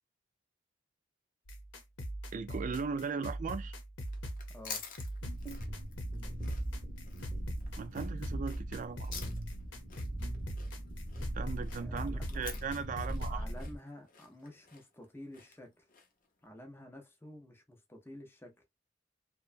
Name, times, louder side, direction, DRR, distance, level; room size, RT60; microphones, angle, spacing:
sound 1, 1.5-13.5, right 1 dB, 90° left, 0.8 m, -41 dB
voice 1, 2.3-3.7 7.8-9.1 11.3-13.4, right 5 dB, 45° right, 0.4 m, -38 dB
sound 2, 4.0-16.3, left 5 dB, 50° left, 0.7 m, -50 dB
voice 2, 4.5-4.8 11.7-12.5 13.2-15.8 16.4-18.5, left 1 dB, 10° left, 0.6 m, -50 dB
sound 3, 5.2-13.8, equal, 15° right, 0.9 m, -41 dB
2.9 x 2.1 x 2.4 m
head